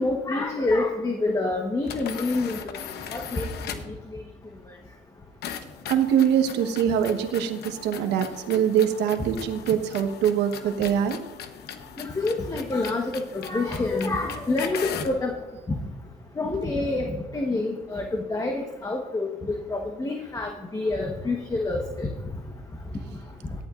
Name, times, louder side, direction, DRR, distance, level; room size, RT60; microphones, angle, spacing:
voice 1, 0.0-2.6 3.1-3.5 12.0-15.4 16.4-22.1, left 2 dB, 20° left, 2 dB, 1.1 m, -27 dB
sound 1, 1.8-4.0 5.4-15.2, left 8 dB, 70° left, 1.0 m, -39 dB
voice 2, 5.9-11.2, right 9 dB, 90° right, 7 dB, 1.1 m, -23 dB
17.5 x 11.5 x 2.5 m, 1.2 s
cardioid pair, 105°, 17 cm